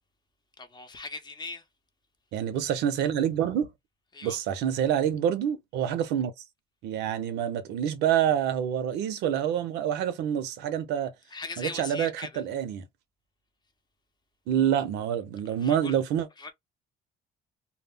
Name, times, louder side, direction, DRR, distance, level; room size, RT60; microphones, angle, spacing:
voice 1, 0.6-1.6 4.1-4.4 11.3-12.3 15.6-16.0 16.4-16.5, left 3 dB, 25° left, 0.7 m, -39 dB
voice 2, 2.3-3.7 4.2-6.3 6.8-11.1 11.6-12.8 14.5-16.3, right 9 dB, 85° right, 0.6 m, -27 dB
2.3 x 2.1 x 3.4 m
cardioid pair, 110°, 17 cm